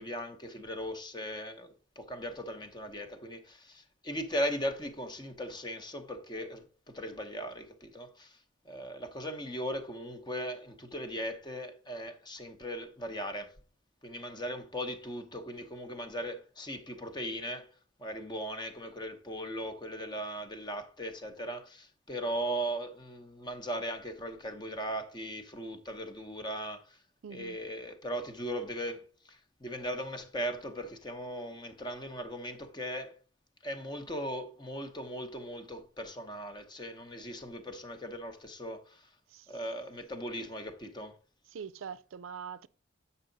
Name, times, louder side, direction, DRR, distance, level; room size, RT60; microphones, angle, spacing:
voice 1, 0.0-13.5 14.0-17.7 18.0-27.0 27.3-33.1 33.6-39.2 39.5-41.2, equal, 20° left, 0.8 m, -38 dB
voice 2, 27.2-27.6 39.3-39.5 41.5-42.7, right 7 dB, 85° right, 0.4 m, -43 dB
8.0 x 5.5 x 3.8 m
head